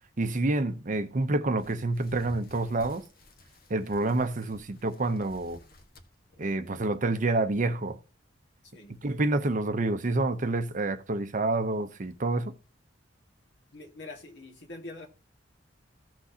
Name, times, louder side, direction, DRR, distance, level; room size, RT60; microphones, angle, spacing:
voice 1, 0.2-3.0 3.7-5.6 6.4-8.0 9.0-12.5, right 2 dB, 45° right, 0.7 m, -28 dB
sound 1, 1.6-7.3 7.7-7.9 8.5-8.6 9.0-9.1, left 1 dB, 55° left, 1.5 m, -53 dB
voice 2, 13.7-15.1, left 2 dB, 70° left, 1.9 m, -44 dB
15.5 x 6.0 x 2.8 m
head